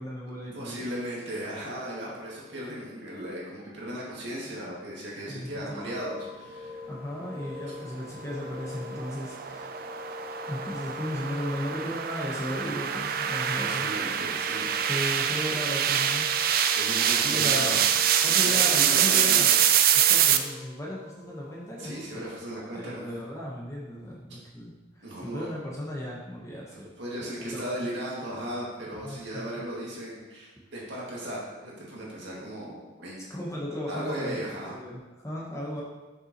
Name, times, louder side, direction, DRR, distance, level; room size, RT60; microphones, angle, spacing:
voice 1, 0.0-1.0 5.3-5.8 6.9-9.8 10.5-13.9 14.9-16.3 17.2-19.5 19.9-22.2 22.6-26.9 27.2-27.8 29.0-29.7 33.3-35.8, equal, 15° left, -4 dB, 0.9 m, -36 dB
voice 2, 0.5-6.8 13.6-14.9 16.7-17.8 18.2-19.5 21.8-23.1 25.0-25.5 26.7-33.2 33.9-34.7, equal, 65° right, -5 dB, 2.0 m, -36 dB
sound 1, 5.8-22.4, left 4 dB, 25° right, 2.0 m, -45 dB
sound 2, 8.3-20.4, right 9 dB, 45° right, 0.3 m, -25 dB
6.9 x 6.8 x 2.9 m, 1.2 s
head